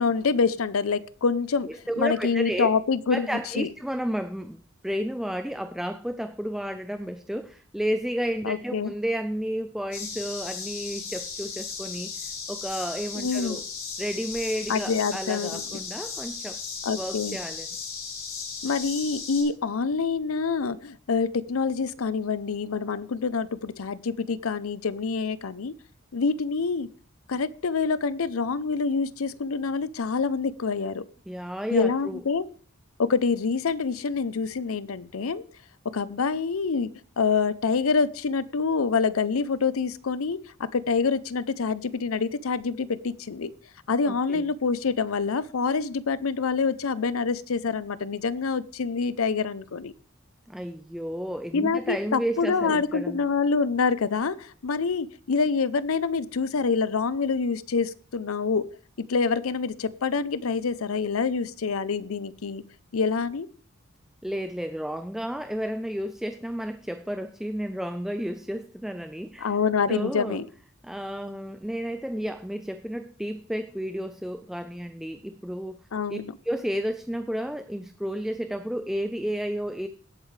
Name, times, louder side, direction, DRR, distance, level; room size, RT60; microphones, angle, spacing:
voice 1, 0.0-1.7 2.0-3.7 8.4-8.9 13.1-13.6 14.7-15.7 16.8-17.4 18.6-25.7 26.1-26.9 27.3-31.0 31.7-32.4 33.0-35.4 35.8-36.9 37.2-43.5 43.9-49.9 51.5-58.7 59.0-62.6 62.9-63.5 69.4-70.5 75.9-76.3, left 5 dB, 90° left, 17 dB, 0.6 m, -26 dB
voice 2, 1.6-2.7 3.1-12.1 12.5-13.6 14.0-16.6 17.0-17.7 31.3-32.2 44.1-44.4 50.5-53.2 64.2-69.5 69.9-70.4 70.8-75.8 76.1-76.2 76.4-79.9, equal, ahead, 9 dB, 0.4 m, -32 dB
sound 1, 9.9-19.4, left 5 dB, 75° left, 6.3 m, -36 dB
17.5 x 8.3 x 3.3 m, 0.43 s
head